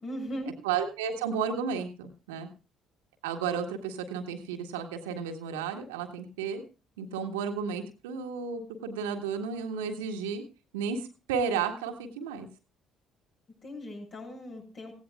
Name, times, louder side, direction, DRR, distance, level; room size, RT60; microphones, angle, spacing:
voice 1, 0.0-0.5 13.6-14.9, equal, 45° left, 1 dB, 7.2 m, -38 dB
voice 2, 0.6-2.5 3.2-6.6 7.0-10.4 10.7-12.5, right 6 dB, 75° right, 5 dB, 1.7 m, -33 dB
17.0 x 16.5 x 2.3 m, 0.33 s
figure-of-eight pair, 50°, 0 cm